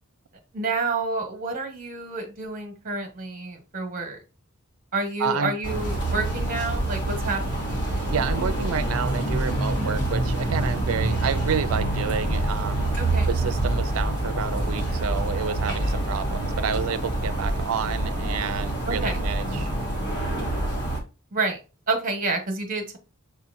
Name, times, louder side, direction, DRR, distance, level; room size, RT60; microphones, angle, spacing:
voice 1, 0.5-4.2 4.9-7.7 9.8-9.9 13.0-13.3 18.9-19.2 21.3-21.6 21.9-23.0, right 3 dB, 40° right, 1.1 m, -29 dB
voice 2, 5.2-5.5 8.1-12.9 13.3-19.7, right 6 dB, 75° right, 0.5 m, -29 dB
sound 1, 5.6-21.0, right 1 dB, 55° left, 1.5 m, -26 dB
6.7 x 2.8 x 2.5 m
head